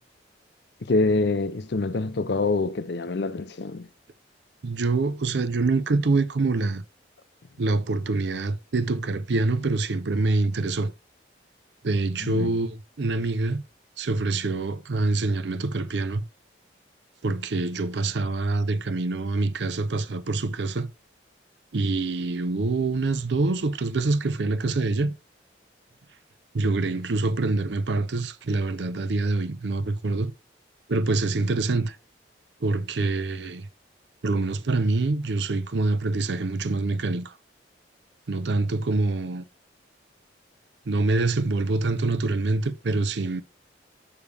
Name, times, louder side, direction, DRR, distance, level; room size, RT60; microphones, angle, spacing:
voice 1, 0.8-3.9 12.2-12.6, left 3 dB, 60° left, 0.6 m, -25 dB
voice 2, 4.6-6.8 7.6-10.9 11.8-13.6 14.0-16.2 17.2-20.9 21.7-25.1 26.5-30.3 30.9-32.0 32.6-33.7 34.2-37.4 38.3-39.4 40.9-43.4, right 3 dB, 70° right, 0.6 m, -25 dB
6.9 x 6.6 x 3.4 m
head